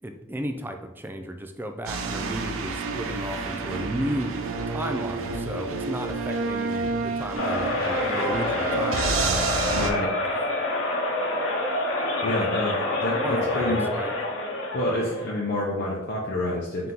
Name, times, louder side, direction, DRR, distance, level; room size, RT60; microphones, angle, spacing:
voice 1, 0.0-10.1 12.3-12.5 13.2-14.1 16.8-16.9, right 1 dB, 10° right, 6 dB, 0.3 m, -34 dB
sound 1, 1.9-9.9, right 3 dB, 80° right, 0.4 m, -29 dB
sound 2, 7.3-15.3, left 1 dB, 90° left, 0.8 m, -27 dB
voice 2, 9.7-10.1 12.2-13.9 14.7-16.9, left 1 dB, 55° left, -4 dB, 0.6 m, -28 dB
3.6 x 2.9 x 3.8 m, 1.0 s
head